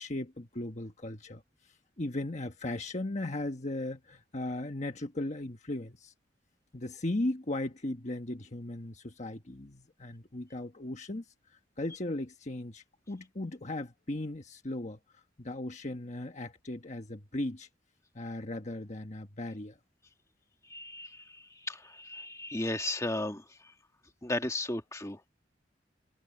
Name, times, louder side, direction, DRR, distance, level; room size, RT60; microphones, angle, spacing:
voice 1, 0.0-6.1 6.7-17.7 18.1-19.8, left 1 dB, 40° left, 1.4 m, -37 dB
voice 2, 20.7-23.4 24.2-25.2, left 2 dB, 15° left, 1.8 m, -35 dB
head